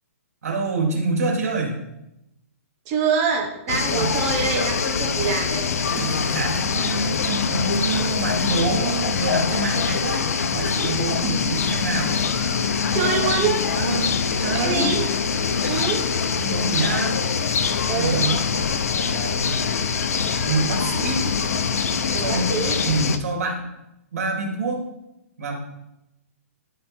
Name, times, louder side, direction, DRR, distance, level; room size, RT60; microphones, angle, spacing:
voice 1, 0.4-1.7 3.9-4.2 5.9-12.2 13.8-14.9 16.4-17.2 17.9-18.4 18.9-19.6 20.3-21.3 22.2-22.5 22.8-23.6 24.1-24.8 25.4-25.5, right 3 dB, 90° right, 0 dB, 3.5 m, -26 dB
voice 2, 2.9-5.6 12.9-13.6 14.5-15.0 15.6-16.0 17.8-18.2 22.1-22.8, right 6 dB, 20° right, 0 dB, 1.2 m, -25 dB
sound 1, 3.7-23.2, left 6 dB, 80° left, 0.9 m, -24 dB
11.5 x 5.8 x 4.5 m, 0.89 s
hypercardioid pair, 175°, 8 cm